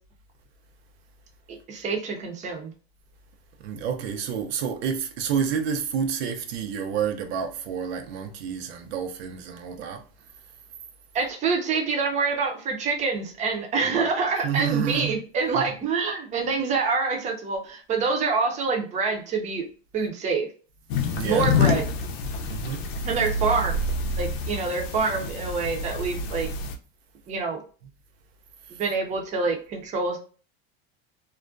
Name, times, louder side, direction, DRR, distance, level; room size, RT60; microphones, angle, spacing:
voice 1, 1.5-2.7 11.1-19.6 19.9-20.5 21.2-21.8 23.0-23.8 24.2-26.5 27.3-27.6 28.7-30.2, right 4 dB, 25° right, 0.5 m, -26 dB
voice 2, 3.6-10.3 13.8-14.1 14.4-15.2 15.5-15.6 21.1-21.5 22.4-22.8 28.7-28.8, right 7 dB, 80° right, 0.6 m, -29 dB
sound 1, 20.9-26.7, left 3 dB, 80° left, 0.6 m, -27 dB
2.4 x 2.1 x 2.5 m
supercardioid pair, 130°, 31 cm